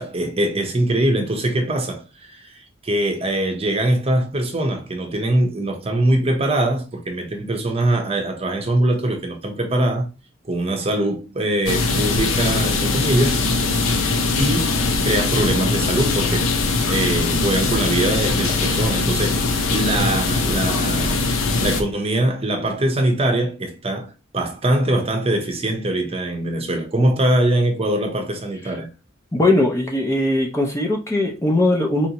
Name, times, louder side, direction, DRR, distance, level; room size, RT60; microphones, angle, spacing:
voice 1, 0.0-10.1 10.5-13.7 14.4-14.8 15.0-16.5 16.9-19.4 19.7-21.2 21.6-28.9, right 1 dB, 30° right, 0.8 m, -22 dB
sound 1, 11.7-21.8, left 3 dB, 70° left, 0.7 m, -21 dB
voice 2, 29.3-32.1, left 2 dB, 15° left, 0.6 m, -19 dB
4.4 x 2.6 x 2.9 m
head